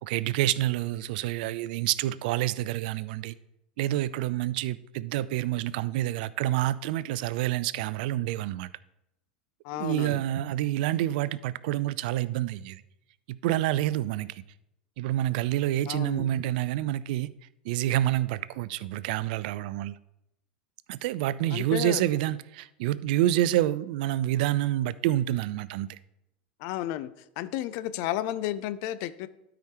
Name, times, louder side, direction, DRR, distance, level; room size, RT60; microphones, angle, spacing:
voice 1, 0.0-3.3 3.8-8.7 9.7-12.8 13.3-14.4 15.0-17.3 17.6-20.0 20.9-25.9, right 14 dB, 65° right, 0.3 m, -28 dB
voice 2, 9.6-10.2 15.9-16.3 21.5-22.0 26.6-27.1 27.4-29.3, left 13 dB, 55° left, 0.4 m, -32 dB
12.5 x 4.9 x 3.0 m
hypercardioid pair, 95°, 5 cm